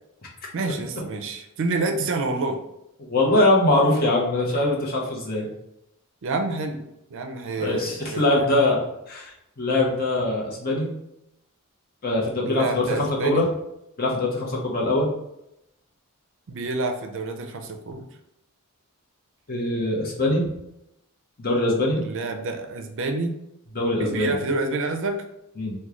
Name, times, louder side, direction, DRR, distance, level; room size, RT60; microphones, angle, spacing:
voice 1, 0.5-2.6 6.2-6.8 7.1-8.3 12.4-13.4 16.5-18.1 22.0-23.3 23.9-25.2, right 3 dB, 60° right, 5 dB, 0.4 m, -28 dB
voice 2, 3.0-5.5 7.6-10.9 12.0-13.5 14.0-15.1 19.5-20.5 21.4-22.0 23.7-24.3 25.6-25.7, left 1 dB, 45° left, -3 dB, 0.8 m, -22 dB
3.0 x 2.2 x 3.6 m, 0.83 s
head